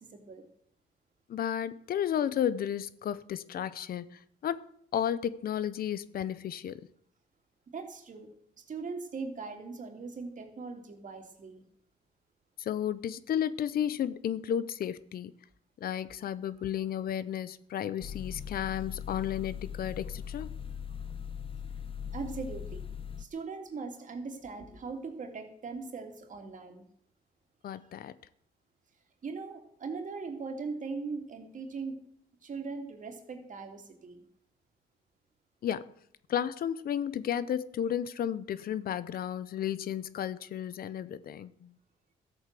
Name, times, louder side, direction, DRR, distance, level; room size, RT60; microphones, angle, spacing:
voice 1, 0.1-0.5 7.7-8.3 8.6-11.6 22.1-22.8 23.2-26.8 29.2-32.0 32.4-34.2, right 4 dB, 50° right, 2.8 m, -40 dB
voice 2, 1.3-6.8 12.6-15.3 15.8-20.5 27.6-28.1 35.6-35.9 36.3-41.7, left 9 dB, 65° left, 0.7 m, -33 dB
sound 1, 18.0-23.2, left 7 dB, 30° left, 0.9 m, -40 dB
13.5 x 8.1 x 7.6 m
cardioid pair, 70°, 17 cm